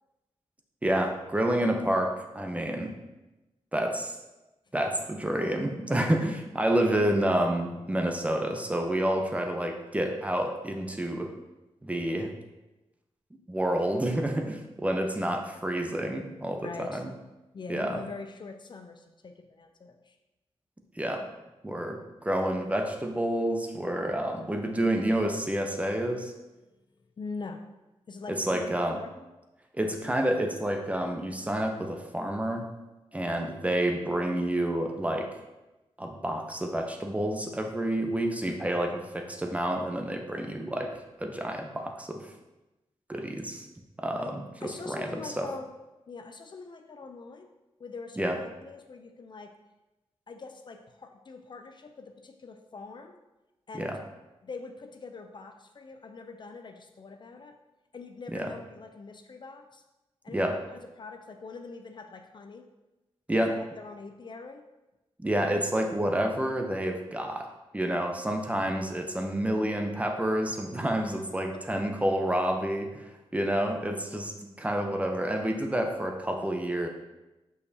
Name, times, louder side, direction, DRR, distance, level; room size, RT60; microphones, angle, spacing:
voice 1, 0.8-3.0 3.7-4.1 4.7-11.3 11.8-12.3 13.5-17.1 17.7-18.0 21.0-21.3 21.6-26.3 28.3-29.0 29.7-32.6 33.1-35.3 36.0-40.9 41.2-42.3 43.1-43.7 44.0-45.5 48.2-48.4 53.8-54.0 58.3-58.5 60.3-60.6 63.3-63.6 65.2-67.5 67.7-74.3 74.6-76.9, right 1 dB, 10° right, 3 dB, 0.7 m, -29 dB
voice 2, 16.6-17.0 17.5-20.2 27.2-27.6 28.1-29.3 44.1-45.7 46.1-47.5 47.8-49.6 50.3-53.2 53.7-53.9 54.4-57.6 57.9-59.8 60.2-62.7 63.4-64.6 71.7-71.9, left 4 dB, 45° left, 6 dB, 0.5 m, -43 dB
6.5 x 5.4 x 2.8 m, 1.0 s
wide cardioid pair, 100°, 11 cm